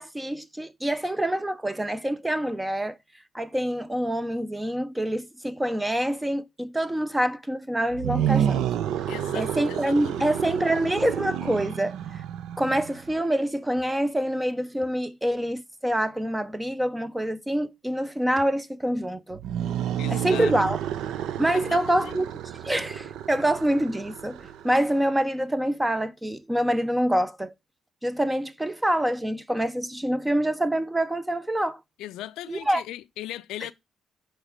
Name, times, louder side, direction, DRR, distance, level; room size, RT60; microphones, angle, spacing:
voice 1, 0.0-3.0 3.3-8.6 9.3-12.2 12.6-19.4 20.1-20.8 21.4-22.3 22.5-27.5 28.0-31.8 32.5-32.8, right 1 dB, 10° right, 0.5 m, -26 dB
sound 1, 7.9-13.1 19.3-25.0, right 10 dB, 85° right, 0.4 m, -30 dB
voice 2, 9.1-10.3 20.0-20.5 21.5-22.2 32.0-33.7, left 14 dB, 90° left, 0.4 m, -38 dB
6.5 x 3.1 x 5.0 m
cardioid pair, 90°, 0 cm